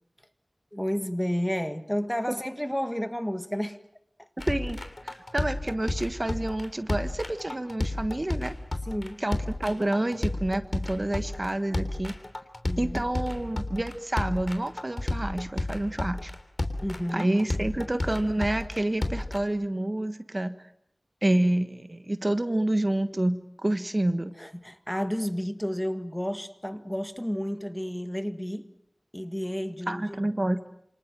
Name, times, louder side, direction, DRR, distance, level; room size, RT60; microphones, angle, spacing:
voice 1, 0.7-3.8 4.2-4.3 8.9-9.2 12.6-13.0 16.8-17.3 24.4-28.7 29.1-30.2, equal, 5° left, 1.8 m, -31 dB
sound 1, 4.4-19.4, left 2 dB, 50° left, 3.2 m, -32 dB
voice 2, 4.4-8.5 9.2-12.1 12.8-16.3 17.1-20.5 21.2-24.3 29.9-30.7, right 1 dB, 35° right, 1.4 m, -28 dB
28.0 x 26.0 x 7.6 m
wide cardioid pair, 60°, 0 cm